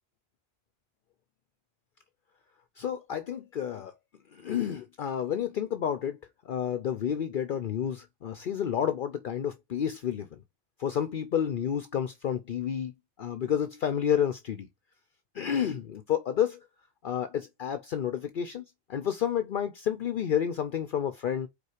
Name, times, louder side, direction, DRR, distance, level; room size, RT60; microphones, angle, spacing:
voice 1, 2.8-3.9 4.3-6.2 6.4-10.4 10.8-12.9 13.2-14.7 15.3-16.6 17.0-18.6 18.9-21.5, left 9 dB, 60° left, 0.8 m, -30 dB
5.4 x 4.4 x 4.9 m
omnidirectional pair, 1.0 m